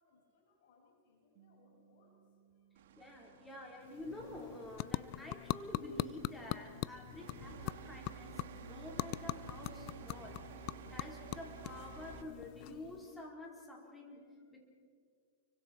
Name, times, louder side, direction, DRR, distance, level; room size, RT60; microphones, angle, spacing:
voice 1, 0.0-2.2 2.5-2.7, left 3 dB, 65° left, 0 dB, 7.3 m, -70 dB
sound 1, 1.3-6.0, right 9 dB, 45° right, 6.9 m, -70 dB
sound 2, 2.7-12.2, right 8 dB, 75° right, 1.9 m, -53 dB
voice 2, 3.0-10.5 10.9-14.6, left 1 dB, 10° left, -1 dB, 4.8 m, -49 dB
sound 3, 3.8-13.3, left 18 dB, 45° left, 0.5 m, -43 dB
29.5 x 24.0 x 4.7 m, 2.1 s
hypercardioid pair, 135°, 0 cm